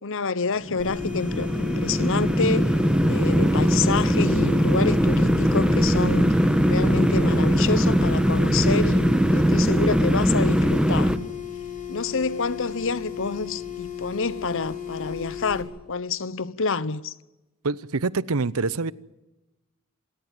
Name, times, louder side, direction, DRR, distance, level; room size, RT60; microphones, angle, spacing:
voice 1, 0.0-2.8 3.1-6.3 6.7-11.1 11.9-17.1, left 4 dB, 65° left, 1.0 m, -28 dB
sound 1, 0.6-11.2, equal, 5° right, 1.3 m, -21 dB
sound 2, 0.8-15.6, left 9 dB, 40° left, 6.7 m, -35 dB
voice 2, 17.6-18.9, right 3 dB, 75° right, 0.9 m, -25 dB
27.5 x 18.0 x 9.1 m
head